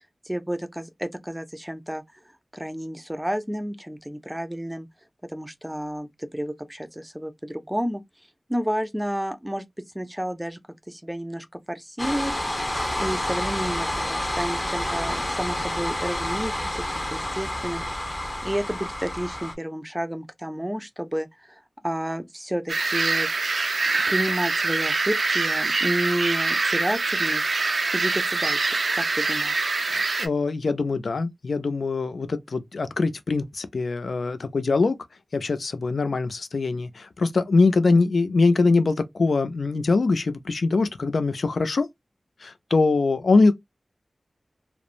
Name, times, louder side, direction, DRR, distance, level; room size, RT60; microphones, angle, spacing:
voice 1, 0.3-2.0 2.5-4.9 5.3-8.0 8.5-9.6 9.9-10.6 10.9-12.3 13.0-18.1 18.4-23.3 23.9-27.6 27.9-29.7, equal, 10° right, 0.4 m, -31 dB
sound 1, 12.0-19.5, left 1 dB, 25° left, 0.8 m, -29 dB
sound 2, 22.7-30.3, right 3 dB, 80° right, 0.3 m, -24 dB
voice 2, 29.8-35.0 35.3-41.9 42.4-43.5, left 3 dB, 90° left, 0.3 m, -23 dB
2.9 x 2.0 x 2.4 m
wide cardioid pair, 80°, 0 cm